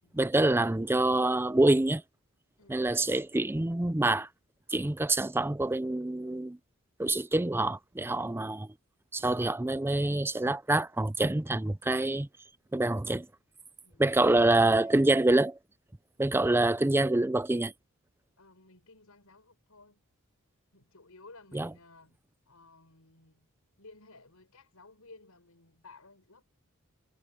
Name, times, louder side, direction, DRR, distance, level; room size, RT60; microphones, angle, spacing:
voice 1, 0.1-2.0 2.7-4.3 4.7-6.6 7.0-8.7 9.1-12.3 12.7-13.3 14.0-15.6 16.2-17.7 21.5-21.7, right 2 dB, 10° right, 0.5 m, -26 dB
voice 2, 2.6-3.0 13.8-15.0 18.4-20.0 20.7-22.2 22.5-23.5 23.8-26.4, left 3 dB, 80° left, 5.6 m, -56 dB
head